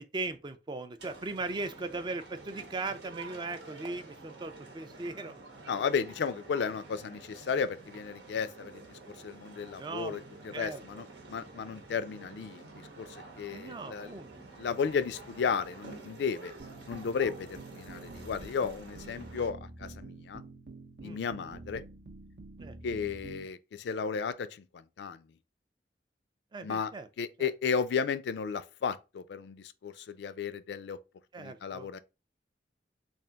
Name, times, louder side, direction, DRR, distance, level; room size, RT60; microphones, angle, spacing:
voice 1, 0.0-5.3 9.8-10.2 10.5-11.0 13.5-14.3 14.6-14.8 21.0-21.2 22.6-22.8 26.5-27.1 27.4-27.5 31.3-31.9, right 3 dB, 25° right, 0.3 m, -38 dB
sound 1, 1.0-19.5, right 3 dB, 85° right, 1.1 m, -49 dB
voice 2, 5.7-14.1 14.6-16.5 16.9-20.4 21.0-21.8 22.8-25.2 26.6-26.9 27.2-31.0 31.4-32.0, left 6 dB, 70° left, 0.3 m, -34 dB
sound 2, 16.6-23.5, right 2 dB, 65° right, 0.7 m, -48 dB
3.4 x 2.4 x 3.8 m
head